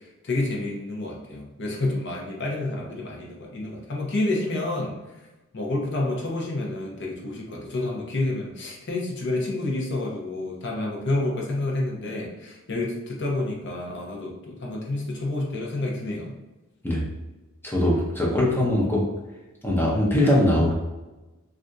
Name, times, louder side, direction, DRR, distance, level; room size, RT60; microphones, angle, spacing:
voice 1, 0.2-5.0 5.5-16.3, left 2 dB, 60° left, -1 dB, 0.7 m, -29 dB
voice 2, 17.6-19.0 19.6-20.7, left 1 dB, 10° left, -4 dB, 0.7 m, -21 dB
3.3 x 2.5 x 2.6 m, 1.1 s
head